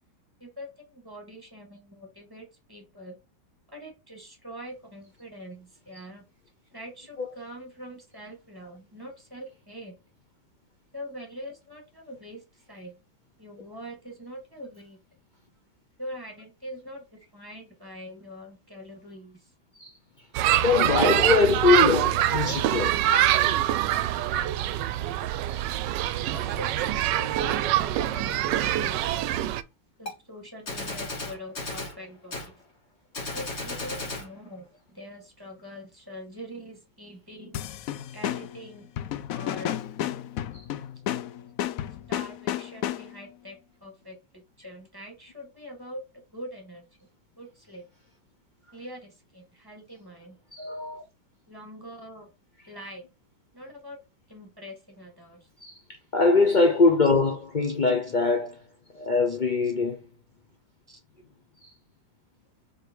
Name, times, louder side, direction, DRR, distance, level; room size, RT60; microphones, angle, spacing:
voice 1, 0.4-3.2 3.7-6.2 6.7-9.9 10.9-13.0 13.4-15.0 16.0-19.5 22.4-22.9 26.3-29.1 30.0-32.6 33.3-37.6 38.1-38.9 39.3-39.8 42.1-46.0 46.3-46.8 47.4-47.8 48.7-50.4 51.5-52.3 52.7-53.1 53.5-54.0 54.3-55.5 57.6-57.7 59.3-59.4 60.9-61.0, equal, 10° right, 1.9 m, -43 dB
sound 1, 20.3-29.6, right 12 dB, 75° right, 1.2 m, -24 dB
voice 2, 20.6-22.9 25.5-25.6 40.5-40.6 50.5-51.0 55.6-55.8 56.1-58.6 58.9-60.0 61.6-61.7, left 4 dB, 60° left, 0.5 m, -22 dB
Gunshot gunfire, 30.1-30.2 30.7-32.0 32.3-32.5 33.1-34.3, left 2 dB, 35° left, 2.4 m, -34 dB
sound 2, 37.5-43.3, left 11 dB, 85° left, 0.7 m, -32 dB
4.9 x 4.5 x 4.7 m
omnidirectional pair, 2.0 m